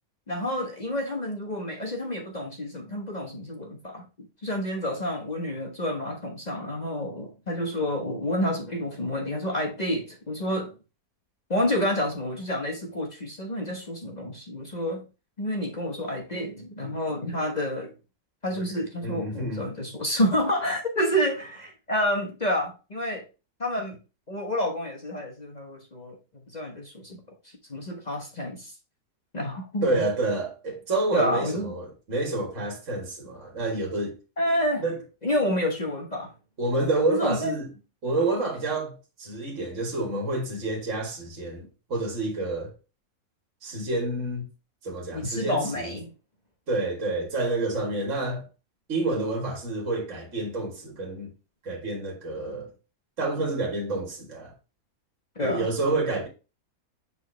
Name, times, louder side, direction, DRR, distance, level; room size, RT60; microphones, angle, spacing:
voice 1, 0.3-4.0 4.4-10.7 11.5-15.0 15.4-17.9 18.4-23.2 23.6-24.0 24.3-26.1 26.5-27.2 27.7-28.7 29.3-30.0 31.1-31.7 34.4-34.8 35.2-36.3 37.1-37.5 45.1-46.1 55.4-55.7, left 1 dB, 30° left, 1.2 m, -29 dB
voice 2, 19.0-19.6 29.8-34.1 34.8-35.0 36.6-37.7 38.0-41.6 41.9-42.7 43.6-44.5 44.8-46.0 46.7-48.5 48.9-51.3 51.6-52.7 53.2-54.5 55.4-56.3, right 2 dB, 55° right, 2.1 m, -28 dB
7.0 x 4.4 x 3.3 m
omnidirectional pair, 1.6 m